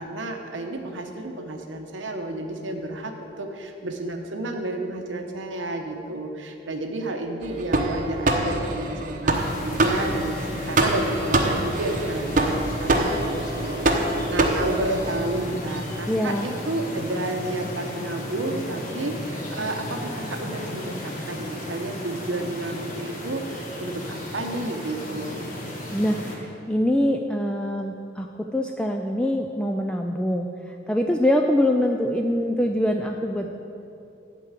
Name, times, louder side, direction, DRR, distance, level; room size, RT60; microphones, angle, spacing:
voice 1, 0.0-25.5, right 2 dB, 90° right, 3 dB, 0.9 m, -31 dB
sound 1, 7.4-15.3, right 2 dB, 45° right, 0.9 m, -25 dB
sound 2, 9.3-26.4, left 1 dB, 45° left, 1.5 m, -34 dB
voice 2, 16.1-16.5 25.9-33.5, left 1 dB, 5° left, 2 dB, 0.4 m, -24 dB
11.5 x 4.6 x 8.2 m, 2.7 s
head